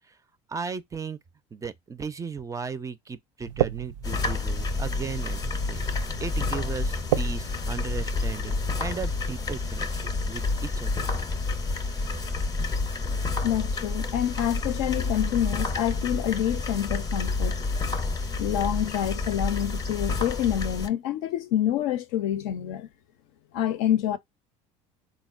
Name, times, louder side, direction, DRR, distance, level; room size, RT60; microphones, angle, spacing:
voice 1, 0.5-1.2 1.5-11.1, right 5 dB, 20° right, 0.4 m, -36 dB
sound 1, 3.4-8.7, right 13 dB, 85° right, 0.4 m, -34 dB
sound 2, 4.0-20.9, left 3 dB, 25° left, 0.6 m, -29 dB
voice 2, 13.4-17.6 18.4-22.9 23.5-24.2, left 11 dB, 75° left, 0.5 m, -27 dB
3.8 x 2.1 x 2.4 m
supercardioid pair, 85°, 16 cm